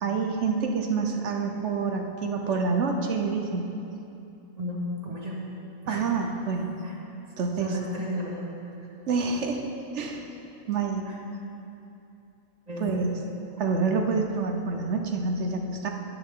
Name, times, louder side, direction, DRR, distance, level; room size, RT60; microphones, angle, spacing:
voice 1, 0.0-3.7 5.9-6.8 7.4-7.8 9.1-9.6 9.9-10.3 10.7-11.2 12.8-13.1 13.6-15.9, right 4 dB, 60° right, 3 dB, 1.1 m, -27 dB
voice 2, 4.6-5.4 5.8-6.0 6.8-6.9 7.6-8.6 11.0-11.2 12.7-13.1, left 1 dB, 30° right, -3 dB, 1.6 m, -33 dB
11.0 x 10.5 x 3.8 m, 2.8 s
omnidirectional pair, 1.4 m